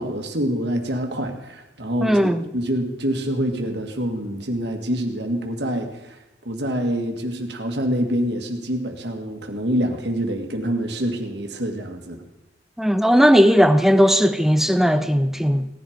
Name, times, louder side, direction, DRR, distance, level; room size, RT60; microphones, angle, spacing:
voice 1, 0.0-6.2 6.5-12.2, equal, 60° right, 1.9 m, -26 dB
voice 2, 2.0-2.4 12.8-15.7, equal, ahead, 0.6 m, -17 dB
17.5 x 11.0 x 5.1 m
head